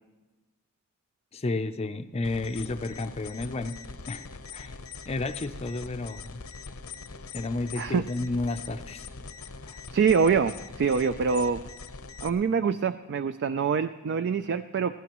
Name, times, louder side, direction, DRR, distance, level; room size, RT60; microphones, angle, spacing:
voice 1, 1.3-3.8 4.1-4.3 4.5-4.8 5.1-6.4 7.3-9.1 9.6-9.8, left 2 dB, 30° left, 9 dB, 0.5 m, -32 dB
sound 1, 2.2-12.3, left 4 dB, 80° left, 0.8 m, -42 dB
voice 2, 9.9-11.6 12.2-15.0, right 6 dB, 55° right, 11 dB, 0.3 m, -25 dB
22.0 x 15.0 x 3.0 m, 1.2 s
head